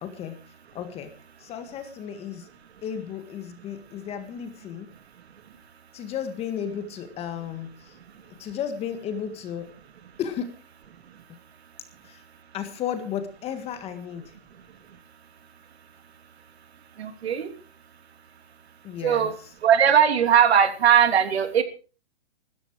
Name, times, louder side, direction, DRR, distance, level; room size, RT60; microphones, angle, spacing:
voice 1, 0.0-0.4 0.7-1.1 1.4-2.5 2.8-4.9 5.9-8.0 8.4-9.7 10.2-10.5 12.0-12.2 12.5-14.2 18.8-19.3, left 8 dB, 20° left, 9 dB, 1.8 m, -33 dB
voice 2, 17.0-17.5 19.0-19.3 19.6-21.6, right 8 dB, 70° right, 8 dB, 3.1 m, -19 dB
16.0 x 13.5 x 4.8 m, 0.37 s
hypercardioid pair, 150°, 32 cm